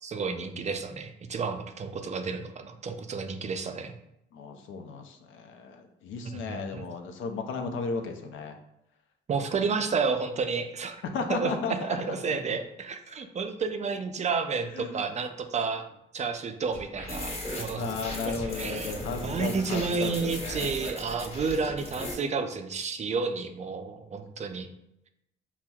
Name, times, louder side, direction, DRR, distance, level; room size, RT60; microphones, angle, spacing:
voice 1, 0.0-3.9 6.3-6.8 9.3-11.0 11.3-11.5 11.8-15.8 16.1-17.9 18.3-18.9 19.2-24.7, right 5 dB, 35° right, 7 dB, 0.4 m, -31 dB
voice 2, 4.3-8.5 11.0-12.4 14.7-14.9 17.8-20.7, left 4 dB, 80° left, 5 dB, 0.5 m, -35 dB
sound 1, 16.7-22.1, left 1 dB, 30° left, 1.2 m, -37 dB
5.6 x 2.1 x 2.3 m, 0.83 s
cardioid pair, 90°, 20 cm